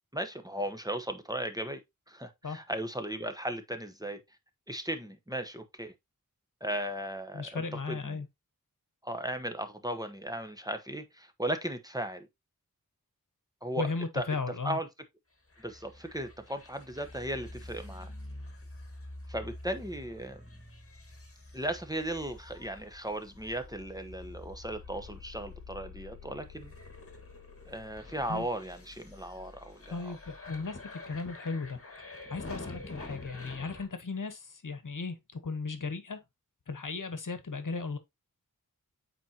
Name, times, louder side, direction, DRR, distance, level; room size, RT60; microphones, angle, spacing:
voice 1, 0.1-1.8 2.1-4.2 4.7-5.9 6.6-8.2 9.0-12.3 13.6-13.9 14.1-14.2 14.6-14.9 15.6-18.1 19.3-20.4 21.5-26.7 27.7-30.1, right 1 dB, 10° right, 1.1 m, -36 dB
voice 2, 7.3-8.3 13.8-14.8 28.3-28.4 29.9-36.2 36.7-38.0, left 4 dB, 65° left, 1.2 m, -36 dB
sound 1, 15.5-33.8, left 2 dB, 40° left, 2.1 m, -47 dB
8.4 x 4.5 x 2.9 m
wide cardioid pair, 60°, 34 cm